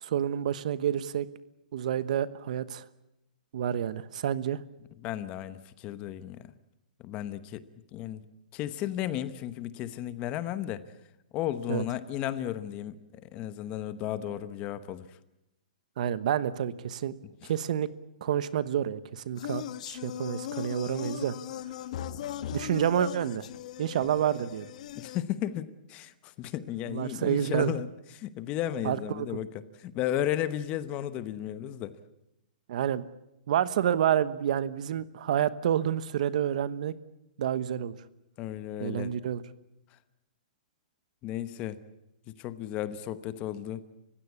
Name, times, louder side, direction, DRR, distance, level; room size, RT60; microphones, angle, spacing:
voice 1, 0.0-1.3 1.7-2.8 3.5-4.6 11.7-11.8 16.0-17.1 17.4-17.9 18.2-21.3 22.5-23.5 23.8-24.7 26.9-27.7 28.8-29.3 32.7-33.0 33.5-36.9 37.4-37.9 38.8-39.4, right 10 dB, 55° right, 15 dB, 1.1 m, -29 dB
voice 2, 5.0-6.5 7.0-7.6 7.9-8.2 8.5-10.9 11.3-15.2 17.4-17.5 24.9-32.0 38.4-39.1 41.2-41.8 42.4-43.8, left 12 dB, 25° left, 14 dB, 1.0 m, -34 dB
sound 1, 19.4-25.2, left 11 dB, 55° left, 1.2 m, -38 dB
29.5 x 16.0 x 8.3 m, 0.88 s
hypercardioid pair, 165°, 5 cm